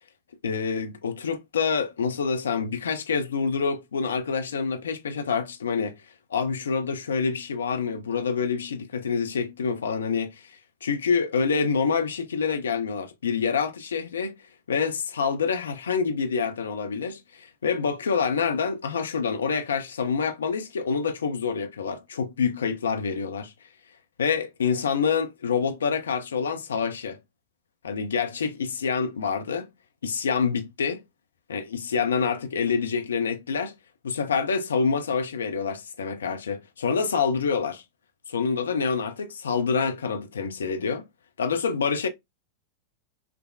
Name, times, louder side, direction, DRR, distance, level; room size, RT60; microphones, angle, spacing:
voice 1, 0.4-5.9 6.3-10.3 10.8-14.3 14.7-23.5 24.2-27.2 27.8-29.7 30.0-31.0 31.5-33.7 34.0-37.8 38.3-41.0 41.4-42.1, left 5 dB, 70° left, 0.5 m, -27 dB
5.8 x 2.0 x 2.2 m
figure-of-eight pair, 90°, 0 cm